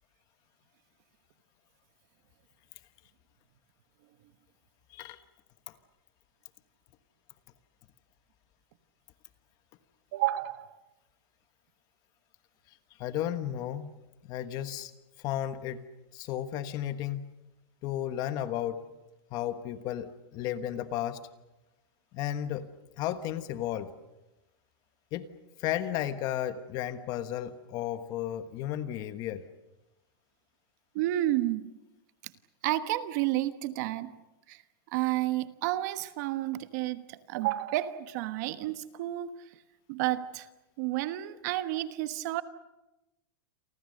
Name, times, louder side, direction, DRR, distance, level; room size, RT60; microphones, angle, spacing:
voice 1, 4.9-5.2 5.7-5.8 13.0-13.9 14.2-14.9 15.2-15.9 16.1-17.3 17.8-18.9 19.3-21.2 22.1-22.7 23.0-23.9 25.1-25.3 25.6-29.5, left 11 dB, 30° left, 11 dB, 1.3 m, -33 dB
voice 2, 10.1-10.8 30.9-31.7 32.6-34.2 34.5-34.6 34.9-39.3 39.9-40.5 40.8-42.4, right 15 dB, 45° right, 11 dB, 1.3 m, -31 dB
29.5 x 24.0 x 6.6 m, 1.0 s
supercardioid pair, 165°, 13 cm